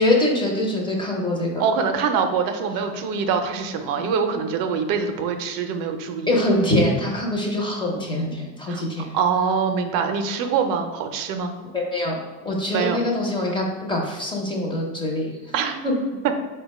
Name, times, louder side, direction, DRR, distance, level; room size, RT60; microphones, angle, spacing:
voice 1, 0.0-1.6 4.0-4.1 6.3-9.1 11.7-12.2 12.4-15.3 15.8-15.9, left 1 dB, 10° left, -1 dB, 0.6 m, -23 dB
voice 2, 1.6-6.4 8.7-8.8 9.1-11.6 12.7-13.0 15.5-15.8, right 6 dB, 50° right, 6 dB, 0.5 m, -24 dB
4.1 x 2.2 x 4.1 m, 1.2 s
supercardioid pair, 135°, 45 cm